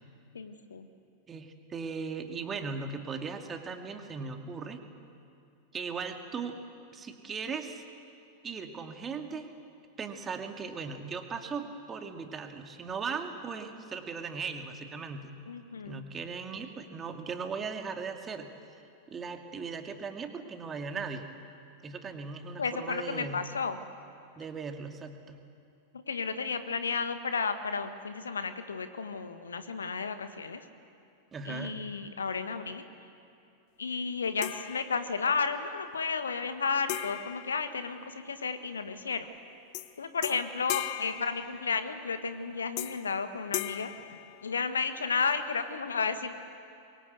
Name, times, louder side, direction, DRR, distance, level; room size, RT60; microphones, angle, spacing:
voice 1, 0.3-0.9 15.5-16.0 22.6-23.8 26.1-30.6 31.4-32.8 33.8-39.3 40.0-43.9 44.4-46.3, left 5 dB, 70° left, 10 dB, 1.4 m, -32 dB
voice 2, 1.3-4.8 5.7-6.6 6.9-7.8 8.4-9.5 10.0-15.4 15.8-18.5 19.1-21.3 21.8-23.4 24.4-25.4 31.3-31.8, right 5 dB, 20° right, 5 dB, 2.2 m, -38 dB
sound 1, 34.4-35.4 36.9-38.5 39.7-39.9 40.2-42.0 42.8-43.2 43.5-45.0, left 16 dB, 45° left, 0.8 m, -39 dB
25.5 x 22.5 x 8.2 m, 2.5 s
figure-of-eight pair, 90°, 0 cm